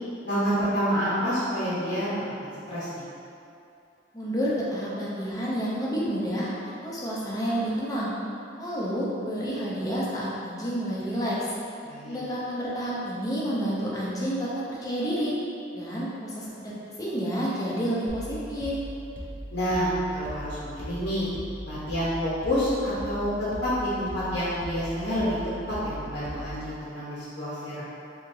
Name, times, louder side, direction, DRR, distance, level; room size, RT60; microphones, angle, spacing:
voice 1, 0.2-2.3 2.7-3.0 11.8-12.2 19.5-21.3 21.6-25.4 25.7-27.8, equal, 70° left, -11 dB, 0.8 m, -28 dB
voice 2, 4.1-8.1 8.6-11.4 12.1-15.3 15.7-18.7, equal, 20° left, -7 dB, 0.6 m, -29 dB
sound 1, 18.1-26.8, right 1 dB, 50° right, 0.5 m, -39 dB
3.9 x 2.9 x 2.6 m, 2.6 s
head